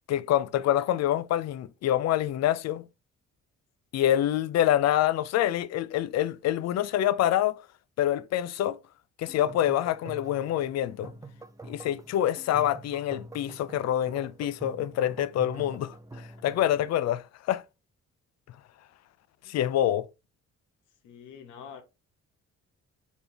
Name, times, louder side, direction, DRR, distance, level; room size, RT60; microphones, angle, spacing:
voice 1, 0.1-2.8 3.9-7.6 8.0-8.8 9.2-11.1 11.7-17.6 19.5-20.1, left 12 dB, 60° left, 0.5 m, -26 dB
sound 1, 9.3-16.9, right 2 dB, 10° right, 0.5 m, -46 dB
voice 2, 21.0-21.8, left 7 dB, 85° left, 1.1 m, -46 dB
4.2 x 3.5 x 2.8 m
cardioid pair, 90°, 30 cm